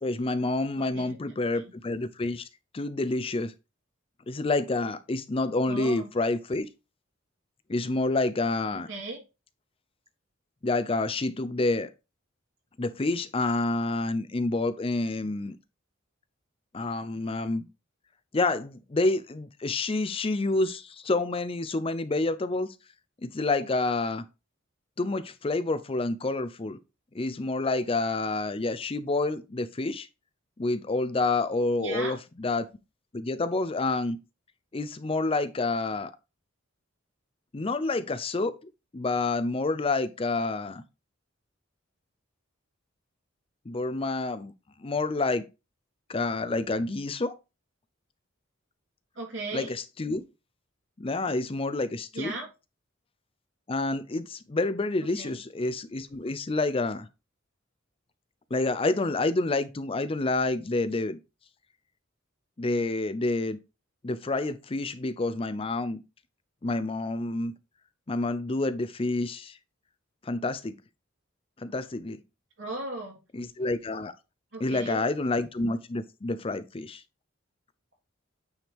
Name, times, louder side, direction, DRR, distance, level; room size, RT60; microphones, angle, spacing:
voice 1, 0.0-2.4 2.7-3.5 4.3-6.7 7.7-8.9 10.6-11.9 12.8-15.6 16.7-17.7 18.3-22.7 23.2-24.2 25.0-26.8 27.1-30.1 30.6-32.7 33.1-34.2 34.7-36.1 37.5-38.6 38.9-40.8 43.7-44.5 44.8-45.5 46.1-47.3 49.5-50.2 51.0-52.3 53.7-57.1 58.5-61.2 62.6-63.6 64.0-66.0 66.6-67.5 68.1-69.6 70.2-70.8 71.6-72.2 73.3-74.1 74.6-77.0, left 2 dB, 30° left, 0.5 m, -28 dB
voice 2, 0.8-1.2 1.5-1.6 5.7-6.1 8.9-9.2 31.8-32.2 49.2-49.7 52.1-52.5 55.1-55.4 72.6-73.2 74.5-75.0, right 2 dB, 65° right, 3.5 m, -36 dB
9.1 x 4.8 x 3.5 m
head